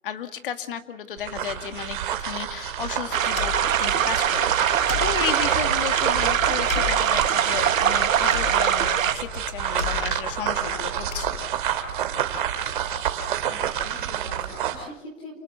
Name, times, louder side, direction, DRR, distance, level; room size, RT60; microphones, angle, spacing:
voice 1, 0.0-3.5 3.8-11.4, left 9 dB, 40° left, 8 dB, 2.2 m, -34 dB
sound 1, 1.2-14.8, right 10 dB, 40° right, 2.5 m, -28 dB
sound 2, 3.1-11.7, left 9 dB, 80° left, 4.4 m, -36 dB
sound 3, 3.1-9.1, right 9 dB, 70° right, 1.7 m, -23 dB
voice 2, 13.5-15.4, equal, 15° left, 2 dB, 4.1 m, -43 dB
30.0 x 19.0 x 6.9 m, 0.82 s
hypercardioid pair, 180°, 41 cm